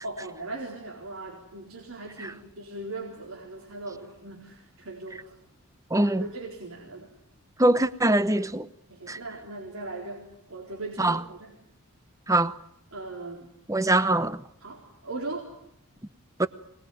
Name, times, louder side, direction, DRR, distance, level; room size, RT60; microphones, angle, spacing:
voice 1, 0.0-5.4 6.0-7.1 8.9-11.6 12.9-13.5 14.6-15.5, right 2 dB, 70° right, 4.2 m, -39 dB
voice 2, 5.9-6.2 7.6-8.7 9.1-9.2 11.0-11.2 12.3-12.5 13.7-14.4 16.4-16.5, right 1 dB, 15° right, 0.9 m, -22 dB
25.5 x 20.0 x 9.4 m
head